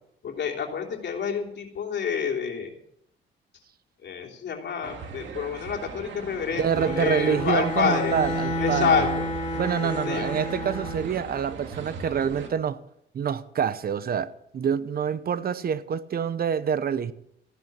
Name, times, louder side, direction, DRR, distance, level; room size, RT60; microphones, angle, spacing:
voice 1, 0.2-2.7 4.0-8.1 8.6-9.3 9.8-10.3, left 6 dB, 60° left, 3.2 m, -28 dB
sound 1, 4.8-12.5, right 5 dB, 70° right, 2.5 m, -38 dB
voice 2, 6.5-9.0 9.6-12.8 13.1-17.1, right 7 dB, 50° right, 0.9 m, -27 dB
Bowed string instrument, 6.6-11.1, left 1 dB, 35° left, 2.6 m, -30 dB
15.0 x 10.5 x 6.1 m
cardioid pair, 90°, 20 cm